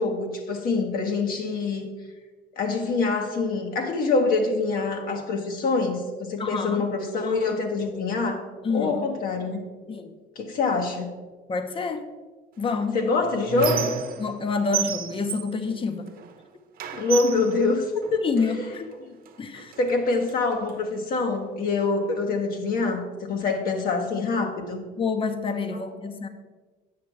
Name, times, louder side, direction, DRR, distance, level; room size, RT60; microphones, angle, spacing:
voice 1, 0.0-1.9 2.6-8.4 8.7-9.6 10.4-11.1 12.9-13.9 16.9-18.7 19.0-19.1 19.5-24.9 25.7-25.8, left 3 dB, 60° left, 3 dB, 1.1 m, -25 dB
voice 2, 6.4-6.9 8.6-9.0 9.9-10.1 11.5-12.1 12.6-13.0 14.2-16.1 18.2-18.9 19.4-19.7 25.0-26.3, left 4 dB, 30° left, 8 dB, 0.8 m, -28 dB
Squeak, 12.7-14.4 14.7-16.4 16.8-18.5 19.3-19.4 19.7-20.7, right 8 dB, 60° right, 0.8 m, -32 dB
8.5 x 5.9 x 4.6 m, 1.3 s
cardioid pair, 110°, 17 cm